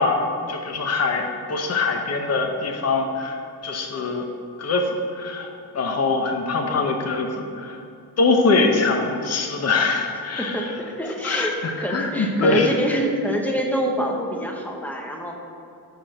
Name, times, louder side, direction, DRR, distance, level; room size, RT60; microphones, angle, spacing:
voice 1, 0.0-4.2 4.6-7.8 8.2-10.6 11.2-12.7, left 3 dB, 40° left, 2 dB, 0.7 m, -23 dB
voice 2, 10.4-15.3, equal, 5° left, 0 dB, 0.7 m, -26 dB
6.7 x 4.5 x 6.3 m, 2.6 s
wide cardioid pair, 170°, 38 cm